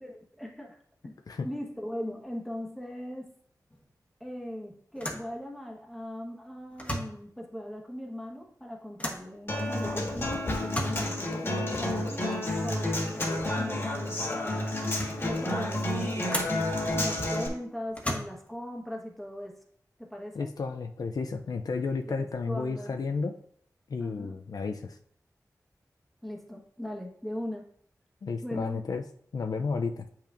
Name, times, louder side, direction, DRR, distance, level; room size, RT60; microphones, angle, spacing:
voice 1, 0.0-1.2 1.4-3.3 4.2-14.7 15.2-16.4 16.9-19.5 20.0-20.5 22.0-23.0 24.0-24.4 26.2-27.7 28.4-28.8, left 1 dB, ahead, 0 dB, 1.2 m, -39 dB
sound 1, 3.7-3.9 4.2-4.3 4.9-5.3 6.7-7.2 9.0-9.3 10.5-11.1 13.1-13.5 14.2-14.3 14.7-15.3 16.3-16.7 17.9-18.5, left 1 dB, 20° left, 1.2 m, -35 dB
Human voice / Acoustic guitar, 9.5-17.5, left 1 dB, 40° left, 1.6 m, -30 dB
voice 2, 20.3-23.3 23.9-25.0 28.2-29.0 29.3-30.1, left 4 dB, 70° left, 5 dB, 0.5 m, -32 dB
8.6 x 5.6 x 2.5 m, 0.64 s
wide cardioid pair, 110°, 7 cm